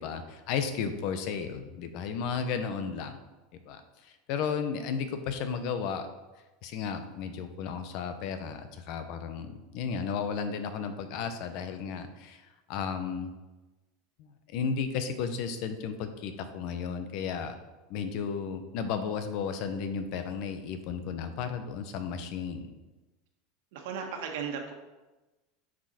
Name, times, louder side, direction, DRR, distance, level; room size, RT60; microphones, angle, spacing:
voice 1, 0.0-3.2 3.7-6.1 6.6-13.3 14.2-17.6 17.9-22.7, left 6 dB, 55° left, 8 dB, 0.9 m, -34 dB
voice 2, 23.7-24.7, right 6 dB, 70° right, 3 dB, 1.4 m, -36 dB
9.4 x 5.3 x 4.3 m, 1.1 s
supercardioid pair, 140°, 0 cm